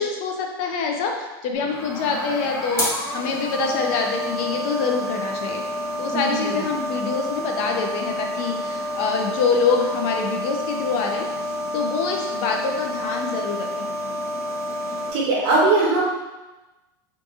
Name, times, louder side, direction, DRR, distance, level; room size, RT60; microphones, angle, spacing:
voice 1, 0.0-5.6 6.0-11.3 11.7-13.8, left 5 dB, 50° left, 2 dB, 0.4 m, -25 dB
sound 1, 1.5-15.1, equal, 20° left, 0.8 m, -29 dB
voice 2, 6.1-6.5 15.1-16.1, right 2 dB, 50° right, -4 dB, 0.9 m, -20 dB
2.6 x 2.5 x 2.4 m, 1.1 s
supercardioid pair, 135°, 13 cm